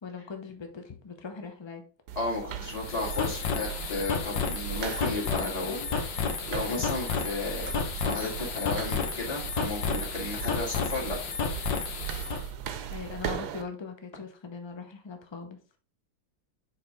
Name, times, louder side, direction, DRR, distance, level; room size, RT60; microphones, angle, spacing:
voice 1, 0.0-1.8 5.3-5.9 6.8-6.9 10.6-10.7 11.0-11.1 12.9-15.6, left 5 dB, 40° left, 5 dB, 0.4 m, -40 dB
sound 1, 2.1-13.6, right 9 dB, 65° right, 1.2 m, -38 dB
voice 2, 2.2-5.8 6.5-11.2, left 3 dB, 20° left, -4 dB, 2.1 m, -33 dB
sound 2, 2.7-12.4, left 6 dB, 70° left, 1.6 m, -32 dB
6.8 x 4.4 x 3.6 m, 0.36 s
omnidirectional pair, 2.1 m